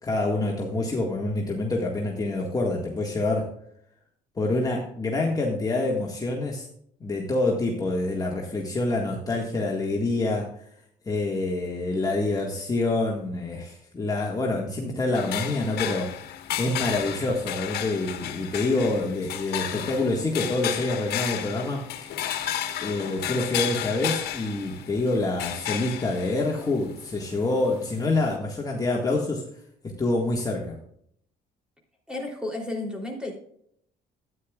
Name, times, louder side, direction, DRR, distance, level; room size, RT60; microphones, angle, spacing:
voice 1, 0.0-3.5 4.4-6.6 7.0-10.5 11.1-16.2 16.6-22.1 22.8-29.4 29.8-30.8, left 2 dB, 20° left, -1 dB, 1.7 m, -26 dB
sound 1, 15.1-28.4, left 11 dB, 75° left, 1.4 m, -33 dB
voice 2, 32.1-33.3, left 2 dB, 5° right, 1 dB, 3.2 m, -32 dB
13.0 x 9.7 x 2.4 m, 0.68 s
cardioid pair, 110°, 17 cm